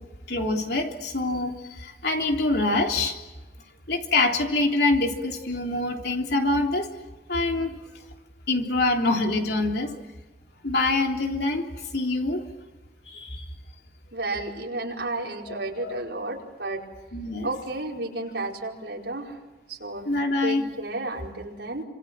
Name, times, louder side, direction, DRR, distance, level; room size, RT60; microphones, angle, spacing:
voice 1, 0.3-3.2 3.9-6.9 7.3-7.8 8.5-10.0 10.6-11.7 11.9-12.5 13.1-13.4 15.5-15.9 17.1-17.5 20.1-20.6, left 2 dB, 65° left, 2 dB, 3.4 m, -25 dB
voice 2, 14.1-16.8 17.4-19.3 19.7-20.1 20.4-21.8, right 2 dB, 75° right, -1 dB, 4.9 m, -32 dB
28.0 x 26.0 x 7.6 m, 1.2 s
head